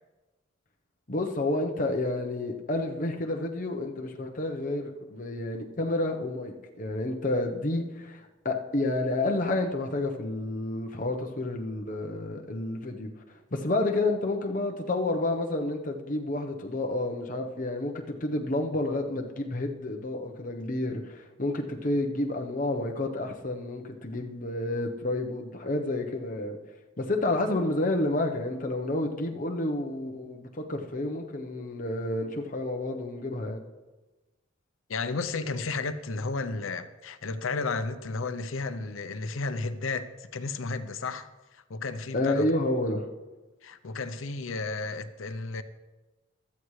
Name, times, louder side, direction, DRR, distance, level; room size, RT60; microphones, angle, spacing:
voice 1, 1.1-13.1 13.5-26.6 27.0-33.6 42.1-43.1, left 2 dB, 40° left, 0.9 m, -30 dB
voice 2, 34.9-41.3 41.7-42.5 43.6-45.6, left 3 dB, 90° left, 0.7 m, -33 dB
15.5 x 12.5 x 3.2 m
head